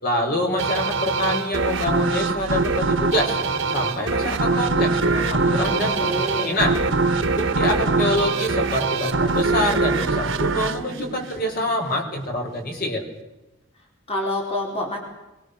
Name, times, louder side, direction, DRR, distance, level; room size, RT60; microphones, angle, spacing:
voice 1, 0.0-3.4 3.7-6.8 7.4-13.0, left 1 dB, 50° left, 2 dB, 5.4 m, -26 dB
sound 1, 0.6-11.8, right 3 dB, 85° right, 1.6 m, -23 dB
voice 2, 5.7-6.6 14.1-15.0, left 1 dB, 30° left, -1 dB, 4.5 m, -27 dB
25.0 x 22.5 x 7.0 m, 1.0 s
head